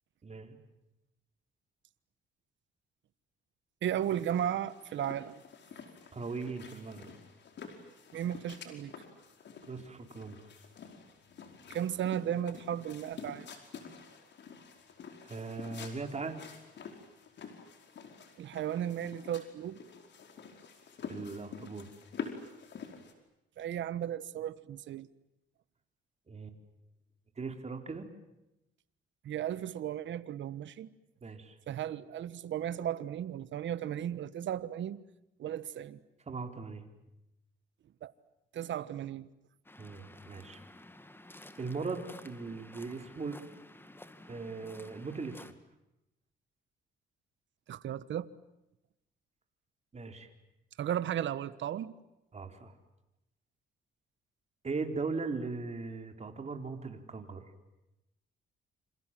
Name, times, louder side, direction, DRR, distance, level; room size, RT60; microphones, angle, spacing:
voice 1, 0.2-0.6 6.1-7.1 9.6-10.5 15.2-16.4 21.1-21.9 26.3-26.5 27.4-28.1 31.2-31.6 36.3-36.9 39.8-40.6 41.6-43.4 44.3-45.4 49.9-50.3 52.3-52.7 54.6-57.4, right 4 dB, 35° right, 5 dB, 4.2 m, -39 dB
voice 2, 3.8-5.3 8.1-8.9 11.7-13.5 18.4-19.8 23.6-25.1 29.2-30.9 31.7-35.0 35.4-36.0 38.0-38.1 38.5-39.3 47.7-48.3 50.8-51.9, right 10 dB, 70° right, 16 dB, 1.4 m, -35 dB
sound 1, 4.0-23.1, left 6 dB, 65° left, 5.0 m, -48 dB
Waves surf, 39.7-45.5, left 1 dB, 10° left, 2.2 m, -53 dB
28.0 x 27.0 x 7.6 m, 0.90 s
cardioid pair, 90°, 20 cm